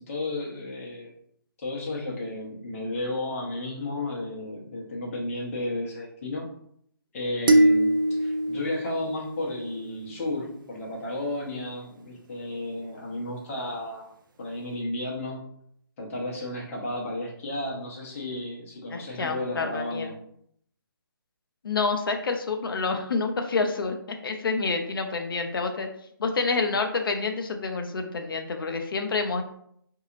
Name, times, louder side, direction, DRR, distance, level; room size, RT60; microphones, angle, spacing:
voice 1, 0.1-1.1 1.6-6.5 7.1-14.1 14.4-15.4 16.0-20.2, left 1 dB, 35° left, -3 dB, 0.9 m, -33 dB
sound 1, 7.5-9.9, right 1 dB, 60° right, 0.5 m, -23 dB
voice 2, 18.9-20.1 21.6-25.9 26.2-29.4, left 4 dB, 70° left, 5 dB, 0.6 m, -28 dB
3.9 x 2.8 x 2.5 m, 0.68 s
hypercardioid pair, 155°, 12 cm